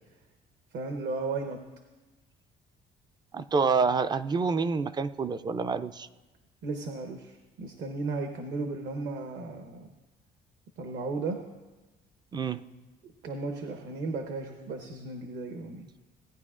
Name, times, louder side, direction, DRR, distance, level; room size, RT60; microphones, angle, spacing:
voice 1, 0.7-1.6 6.6-9.9 10.8-11.4 13.2-15.9, right 3 dB, 70° right, 0.9 m, -35 dB
voice 2, 3.3-6.1 12.3-12.6, right 5 dB, 25° right, 0.3 m, -27 dB
17.5 x 9.6 x 2.4 m
cardioid pair, 110°, 17 cm